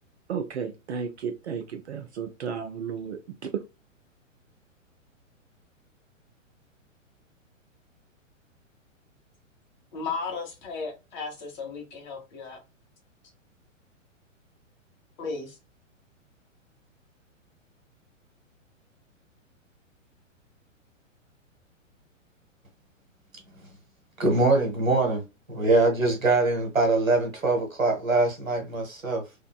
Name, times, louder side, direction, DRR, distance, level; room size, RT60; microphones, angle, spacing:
voice 1, 0.3-3.6, right 7 dB, 55° right, 0.5 m, -33 dB
voice 2, 9.9-12.6 15.2-15.6, left 4 dB, 35° left, 1.1 m, -35 dB
voice 3, 23.3-23.8 24.2-29.3, right 3 dB, 85° right, 1.2 m, -24 dB
2.5 x 2.3 x 2.2 m
figure-of-eight pair, 115°, 39 cm